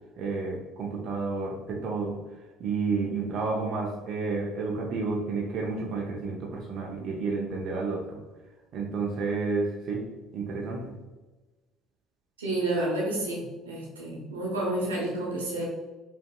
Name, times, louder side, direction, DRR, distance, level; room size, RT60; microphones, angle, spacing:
voice 1, 0.2-2.2 2.6-8.2 8.7-11.0, right 4 dB, 55° right, -2 dB, 0.6 m, -31 dB
voice 2, 12.4-15.6, right 1 dB, 85° right, -4 dB, 0.9 m, -30 dB
5.1 x 2.7 x 2.2 m, 1.2 s
figure-of-eight pair, 55°, 0 cm